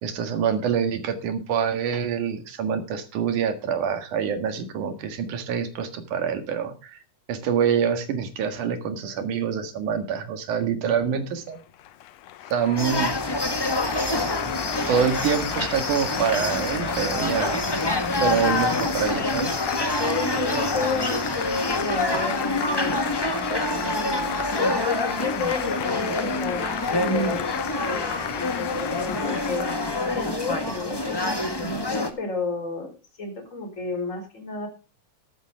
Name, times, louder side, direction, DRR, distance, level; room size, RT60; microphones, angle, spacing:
voice 1, 0.0-7.0 7.3-11.6 12.5-13.1 14.5-14.6 14.9-17.7 18.2-19.6, right 7 dB, 80° right, 8 dB, 3.2 m, -26 dB
Applause, 11.5-30.4, left 13 dB, 70° left, 1.8 m, -33 dB
sound 1, 12.8-32.1, left 1 dB, 40° left, 0.3 m, -27 dB
voice 2, 20.0-22.9 23.5-29.7 30.0-32.9 33.2-34.7, left 3 dB, 25° left, 6 dB, 4.4 m, -32 dB
13.5 x 12.5 x 3.6 m, 0.32 s
omnidirectional pair, 3.5 m